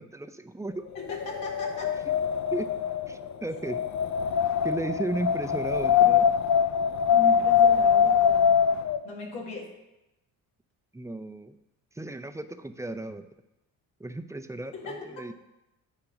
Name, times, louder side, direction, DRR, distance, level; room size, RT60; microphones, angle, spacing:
voice 1, 0.0-0.8 2.5-2.7 3.1-3.8 4.6-6.3 10.9-11.5 12.0-13.2 14.0-15.3, right 2 dB, 5° right, 8 dB, 0.4 m, -34 dB
voice 2, 0.9-1.9 7.1-8.5 9.0-9.7 14.7-15.2, left 2 dB, 85° left, -1 dB, 1.8 m, -38 dB
Wind, 1.0-9.0, left 7 dB, 40° left, 0.6 m, -23 dB
8.9 x 3.8 x 5.8 m, 0.93 s
hypercardioid pair, 55°, 48 cm